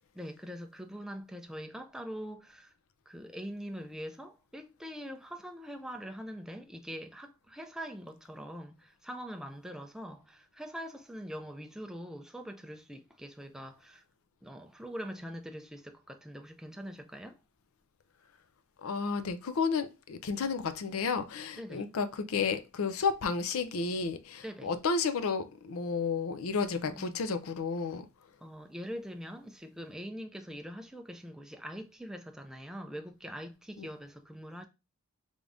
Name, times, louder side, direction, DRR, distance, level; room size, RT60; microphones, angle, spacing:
voice 1, 0.1-2.7 3.1-14.0 14.4-17.4 21.6-21.9 24.4-24.7 26.7-27.2 28.4-34.7, equal, ahead, 0.3 m, -43 dB
voice 2, 18.8-28.1 33.8-33.9, left 5 dB, 70° left, 0.5 m, -32 dB
3.6 x 3.4 x 2.5 m
head